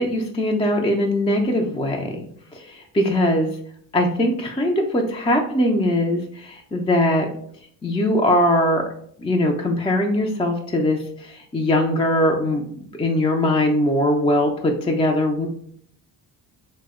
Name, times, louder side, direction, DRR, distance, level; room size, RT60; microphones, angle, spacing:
voice 1, 0.0-2.3 2.5-3.6 3.9-7.3 7.8-8.8 9.2-12.6 13.0-15.5, left 1 dB, 15° left, 2 dB, 0.4 m, -21 dB
2.7 x 2.1 x 3.5 m, 0.62 s
supercardioid pair, 50°, 45 cm